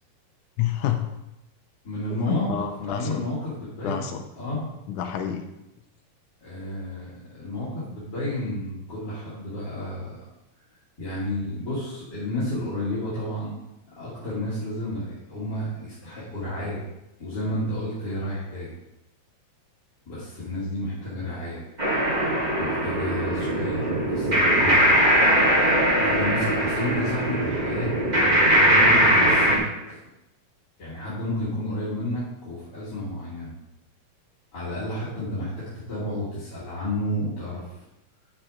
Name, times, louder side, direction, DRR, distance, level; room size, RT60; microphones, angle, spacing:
voice 1, 0.6-1.1 2.3-3.3 3.8-4.2 4.9-5.4, left 10 dB, 75° left, 6 dB, 2.0 m, -28 dB
voice 2, 1.8-2.5 2.8-4.1 4.3-4.7 6.4-10.2 11.0-13.5 14.0-16.8 17.2-18.7 20.1-21.7 22.6-24.9 25.9-27.9 28.7-29.6 29.9-30.0 30.8-33.5 34.5-37.7, left 1 dB, 30° left, -11 dB, 2.8 m, -31 dB
sound 1, 21.8-29.6, right 1 dB, 40° right, 0.6 m, -20 dB
10.0 x 7.1 x 3.8 m, 0.92 s
omnidirectional pair, 4.0 m